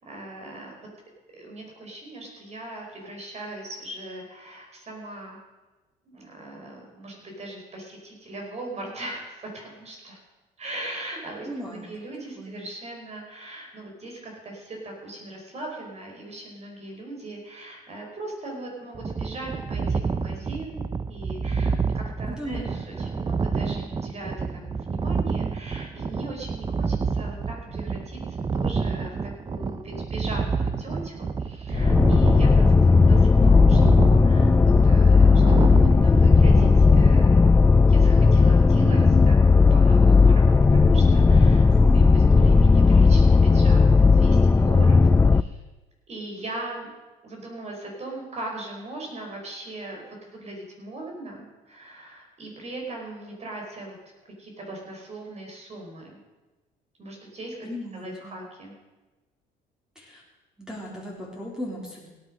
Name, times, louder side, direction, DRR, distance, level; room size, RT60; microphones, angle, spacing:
voice 1, 0.0-0.7 1.3-5.4 6.0-10.2 10.6-20.8 21.1-37.3 37.9-40.4 40.7-45.6 46.1-46.9 47.2-54.0 54.2-56.2 57.0-57.7 57.9-58.7, right 2 dB, 40° right, 0 dB, 4.9 m, -39 dB
voice 2, 11.5-11.8 12.4-12.6 22.3-22.7 41.7-42.0 57.6-58.4 60.0-60.2 60.6-62.1, equal, 5° right, -3 dB, 3.6 m, -37 dB
sound 1, 18.9-37.1, right 5 dB, 25° right, 0.7 m, -29 dB
sound 2, 31.7-45.4, left 4 dB, 15° left, 0.4 m, -16 dB
17.0 x 9.7 x 6.3 m, 1.2 s
cardioid pair, 110°, 17 cm